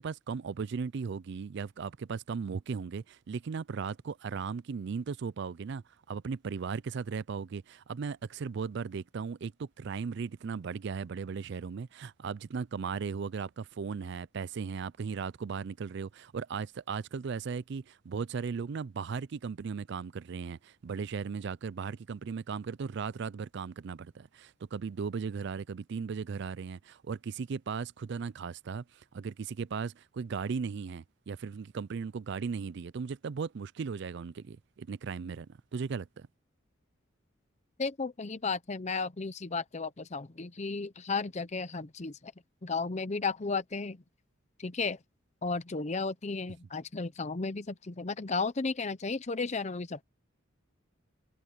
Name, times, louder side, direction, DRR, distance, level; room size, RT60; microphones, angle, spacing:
voice 1, 0.0-36.3, right 5 dB, 55° right, 0.4 m, -37 dB
voice 2, 37.8-42.3 42.6-44.0 44.6-45.0 45.4-50.0, left 4 dB, 35° left, 0.7 m, -34 dB
head